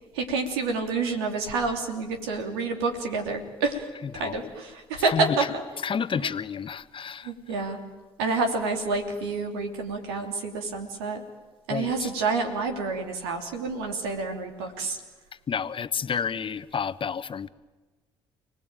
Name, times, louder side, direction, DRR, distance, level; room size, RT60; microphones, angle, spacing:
voice 1, 0.1-3.9 4.1-5.4 6.2-6.3 7.2-7.8 8.2-11.2 11.7-15.0, right 4 dB, 85° right, 4 dB, 3.0 m, -28 dB
voice 2, 4.1-4.5 5.1-5.4 5.8-7.3 11.7-12.1 15.5-17.5, left 7 dB, 45° left, 14 dB, 1.1 m, -30 dB
29.5 x 19.0 x 9.0 m, 1.2 s
hypercardioid pair, 50°, 13 cm